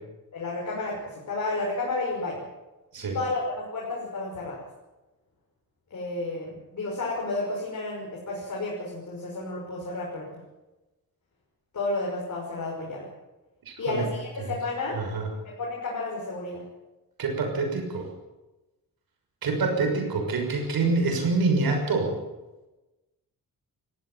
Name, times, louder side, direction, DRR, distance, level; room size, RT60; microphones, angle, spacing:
voice 1, 0.3-2.4 3.1-4.6 5.9-10.3 11.7-13.1 13.8-15.0 15.4-16.6, left 2 dB, 55° left, -3 dB, 5.9 m, -31 dB
voice 2, 13.7-14.1 14.9-15.3 17.2-18.1 19.4-22.2, right 3 dB, 80° right, 3 dB, 6.2 m, -26 dB
21.5 x 15.5 x 9.0 m, 1.1 s
wide cardioid pair, 145°, 35 cm